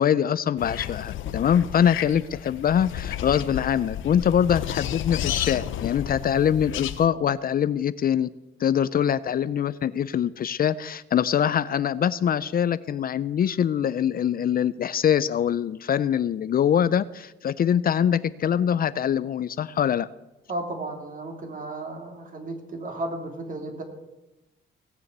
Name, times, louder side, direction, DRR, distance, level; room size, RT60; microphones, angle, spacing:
voice 1, 0.0-8.3 8.6-20.1, left 9 dB, 50° left, 15 dB, 0.5 m, -23 dB
sound 1, 0.6-7.1, left 11 dB, 75° left, 0.8 m, -32 dB
voice 2, 20.5-23.8, right 2 dB, 40° right, 4 dB, 3.0 m, -34 dB
18.0 x 7.0 x 8.1 m, 1.0 s
cardioid pair, 90°, 20 cm